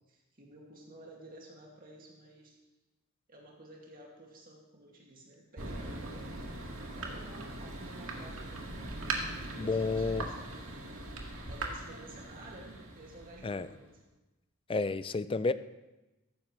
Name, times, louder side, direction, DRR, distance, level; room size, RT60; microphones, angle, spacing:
voice 1, 0.1-2.6 3.3-6.3 6.9-8.8 9.4-11.1 11.5-13.9, right 1 dB, 45° right, -1 dB, 2.2 m, -52 dB
Thunder, 5.6-13.9, right 2 dB, 80° right, 2.0 m, -40 dB
voice 2, 9.6-10.2 13.4-13.7 14.7-15.5, left 3 dB, 25° left, 14 dB, 0.4 m, -30 dB
14.5 x 13.0 x 3.2 m, 1.1 s
head